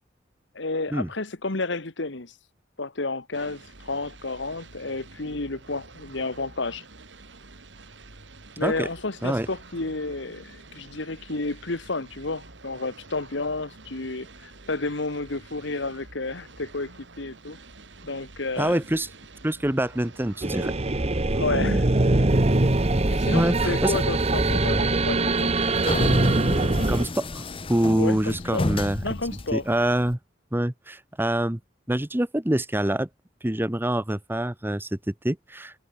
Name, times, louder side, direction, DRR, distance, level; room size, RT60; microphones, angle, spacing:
voice 1, 0.5-2.3 2.8-6.8 8.6-16.9 17.2-17.6 18.0-18.8 21.3-21.9 23.1-25.5 28.0-28.7 29.0-29.6, left 3 dB, 70° left, 1.7 m, -31 dB
sound 1, 3.3-22.3, right 3 dB, 65° right, 2.5 m, -48 dB
voice 2, 18.6-19.1 19.4-20.7 23.3-23.9 26.6-29.0 29.5-30.2 30.5-31.6 31.9-33.1 33.4-35.7, right 1 dB, 10° right, 1.0 m, -25 dB
sound 2, 20.4-27.1, right 2 dB, 35° right, 1.0 m, -22 dB
sound 3, 25.1-30.1, left 2 dB, 30° left, 0.8 m, -32 dB
head